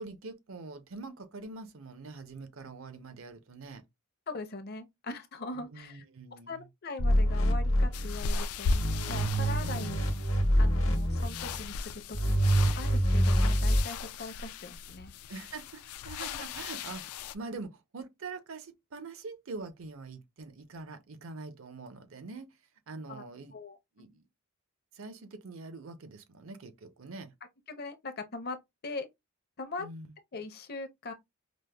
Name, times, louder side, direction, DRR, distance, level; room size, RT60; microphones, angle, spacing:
voice 1, 0.0-3.8 5.5-6.7 9.6-10.0 15.3-22.6 22.9-23.6 24.0-24.3 24.9-27.3 29.8-30.1, right 3 dB, 65° right, 0.6 m, -44 dB
voice 2, 4.3-6.0 6.3-8.7 9.1-10.0 10.6-15.1 16.2-16.4 23.1-23.2 23.5-23.8 27.7-28.6 28.8-29.1 29.6-29.9 30.3-31.1, left 3 dB, 45° left, 0.6 m, -41 dB
sound 1, 7.0-8.4 8.7-11.6 12.1-13.8, equal, 70° left, 0.9 m, -26 dB
sound 2, 7.9-17.3, left 4 dB, 85° left, 0.3 m, -37 dB
5.0 x 2.0 x 2.2 m
head